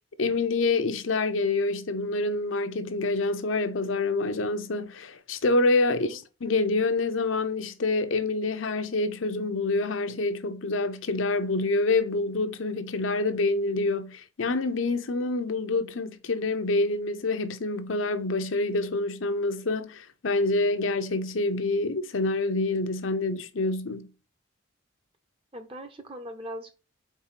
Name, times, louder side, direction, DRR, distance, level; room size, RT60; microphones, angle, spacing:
voice 1, 0.2-24.1, left 3 dB, 75° left, 0.7 m, -27 dB
voice 2, 5.9-6.2 25.5-26.8, equal, 25° right, 0.7 m, -40 dB
4.7 x 4.1 x 5.7 m
head